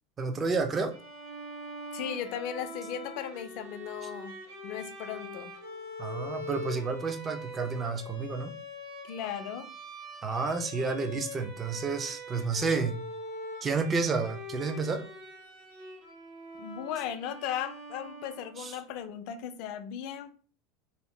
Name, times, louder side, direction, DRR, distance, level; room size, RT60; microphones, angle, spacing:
voice 1, 0.2-1.0 4.0-4.1 6.0-8.5 10.2-13.0 13.6-15.0 18.6-18.7, right 4 dB, 30° right, 0.5 m, -30 dB
Bowed string instrument, 0.9-18.7, left 1 dB, 70° right, 1.1 m, -43 dB
voice 2, 1.9-4.3 4.6-5.5 9.0-9.7 16.6-20.3, left 9 dB, 60° left, 0.4 m, -37 dB
2.8 x 2.0 x 3.1 m
hypercardioid pair, 90°, 0 cm